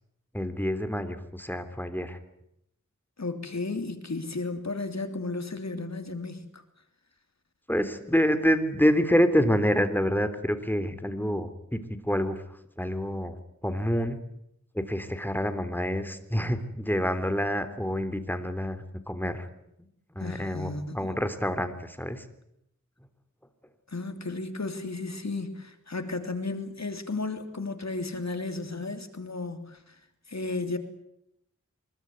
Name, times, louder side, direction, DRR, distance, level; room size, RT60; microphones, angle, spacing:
voice 1, 0.3-2.2 7.7-12.4 12.8-14.2 14.7-19.5 20.1-22.2, equal, 5° left, 10 dB, 3.2 m, -27 dB
voice 2, 3.2-6.5 20.2-21.1 23.9-29.9 30.3-30.8, left 3 dB, 65° left, 8 dB, 3.1 m, -34 dB
24.5 x 21.5 x 9.5 m, 0.78 s
wide cardioid pair, 50°, 29 cm